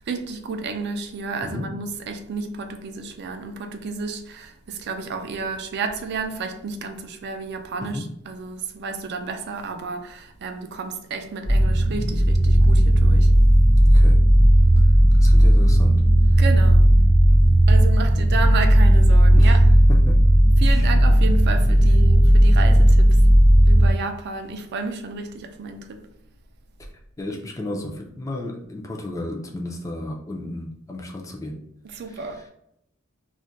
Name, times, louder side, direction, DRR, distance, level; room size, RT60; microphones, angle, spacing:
voice 1, 0.0-13.3 16.4-16.9 17.7-19.6 20.6-23.3 23.7-26.1 31.8-32.5, right 4 dB, 50° right, 0.4 m, -31 dB
sound 1, 11.4-23.9, right 1 dB, 50° left, 0.8 m, -14 dB
voice 2, 13.8-14.2 15.2-16.0 19.4-19.6 19.9-20.2 20.6-21.0 27.2-31.6 32.1-32.4, left 1 dB, 15° left, 0.4 m, -33 dB
2.4 x 2.1 x 3.8 m
head